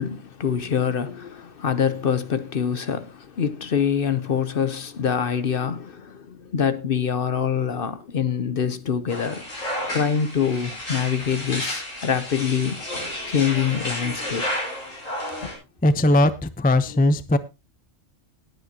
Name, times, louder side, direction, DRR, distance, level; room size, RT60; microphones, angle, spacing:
voice 1, 0.0-9.4 9.9-12.8 13.3-14.5, left 7 dB, 50° left, 0.9 m, -25 dB
sound 1, 9.1-15.5, left 1 dB, 75° left, 5.9 m, -31 dB
voice 2, 15.8-17.4, left 1 dB, 10° left, 0.5 m, -19 dB
19.0 x 8.6 x 2.8 m
omnidirectional pair, 1.3 m